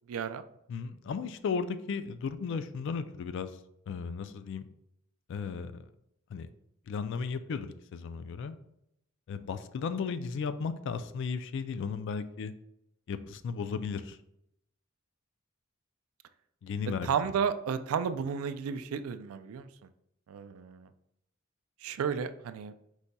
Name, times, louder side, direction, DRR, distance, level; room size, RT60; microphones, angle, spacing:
voice 1, 0.1-0.4 17.0-19.7 20.3-20.9 21.8-22.7, right 7 dB, 90° right, 11 dB, 0.3 m, -32 dB
voice 2, 0.7-3.5 3.9-4.7 5.3-5.8 6.3-6.5 6.9-8.6 9.3-12.5 13.1-14.2 16.6-17.1, left 5 dB, 60° left, 12 dB, 0.3 m, -35 dB
4.7 x 4.0 x 2.2 m, 0.78 s
head